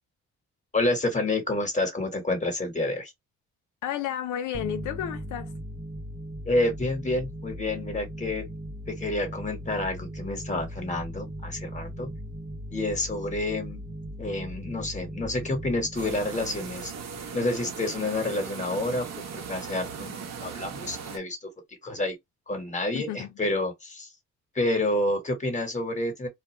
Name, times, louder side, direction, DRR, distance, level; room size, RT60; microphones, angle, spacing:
voice 1, 0.7-3.1 6.4-8.5 8.9-12.1 12.7-13.8 14.2-16.9 17.3-19.1 19.3-21.5 21.8-22.1 22.5-24.1 24.5-26.3, left 2 dB, 25° left, 1.3 m, -29 dB
voice 2, 3.8-5.5 22.9-23.3, left 10 dB, 75° left, 0.5 m, -32 dB
sound 1, 4.5-17.7, right 1 dB, 15° right, 0.6 m, -39 dB
sound 2, 15.9-21.2, right 6 dB, 60° right, 0.9 m, -38 dB
2.4 x 2.3 x 2.9 m
cardioid pair, 90°, 30 cm